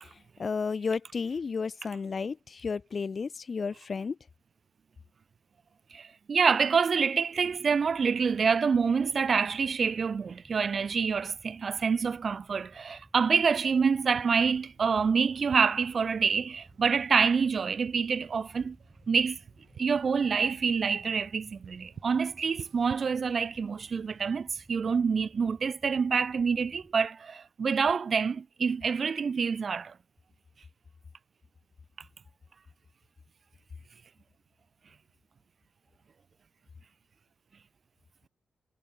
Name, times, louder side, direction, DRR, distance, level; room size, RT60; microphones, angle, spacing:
voice 1, 0.4-4.2, left 5 dB, 40° left, 1.0 m, -32 dB
voice 2, 5.9-18.8 19.1-19.4 19.8-29.9, right 5 dB, 45° right, 0.5 m, -27 dB
sound 1, 7.3-26.9, right 1 dB, 5° right, 6.0 m, -58 dB
sound 2, 13.8-24.3, right 8 dB, 75° right, 6.3 m, -53 dB
wide cardioid pair, 135°, 0 cm